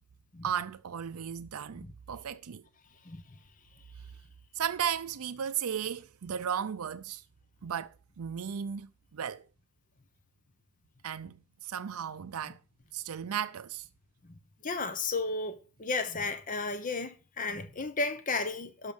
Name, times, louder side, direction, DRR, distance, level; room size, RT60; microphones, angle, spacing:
voice 1, 0.4-2.6 4.5-7.2 7.6-9.5 11.0-12.6 12.9-13.9, right 8 dB, 90° right, 0.5 m, -35 dB
voice 2, 14.6-18.9, left 3 dB, 35° left, 1.1 m, -33 dB
11.5 x 5.8 x 5.3 m
head